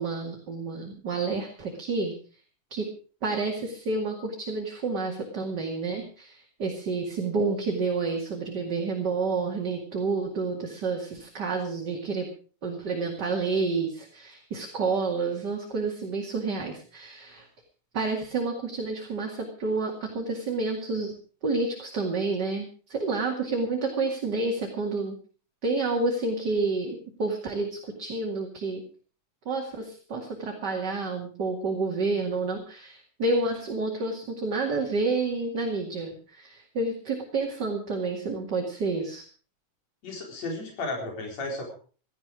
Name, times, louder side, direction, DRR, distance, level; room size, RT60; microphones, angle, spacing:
voice 1, 0.0-2.1 2.7-2.9 3.2-12.3 12.6-17.5 17.9-21.1 21.4-25.2 25.6-28.8 29.5-39.3, right 3 dB, 35° right, 1 dB, 2.5 m, -29 dB
voice 2, 40.0-41.7, left 2 dB, 55° left, 1 dB, 5.3 m, -34 dB
17.0 x 13.5 x 5.0 m, 0.40 s
omnidirectional pair, 3.8 m